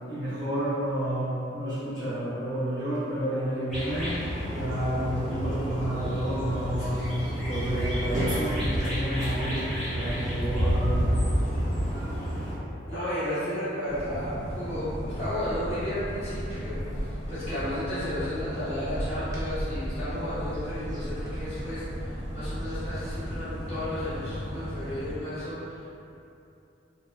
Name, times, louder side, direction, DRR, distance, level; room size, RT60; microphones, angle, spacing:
voice 1, 0.1-4.2 4.5-7.1 7.4-11.2, right 1 dB, 65° left, -13 dB, 1.1 m, -30 dB
sound 1, 3.7-12.6, equal, ahead, 0.9 m, -29 dB
voice 2, 12.9-25.9, equal, 30° left, -16 dB, 0.9 m, -33 dB
sound 2, 13.9-25.1, equal, 15° right, 0.4 m, -35 dB
2.7 x 2.1 x 2.2 m, 2.7 s
head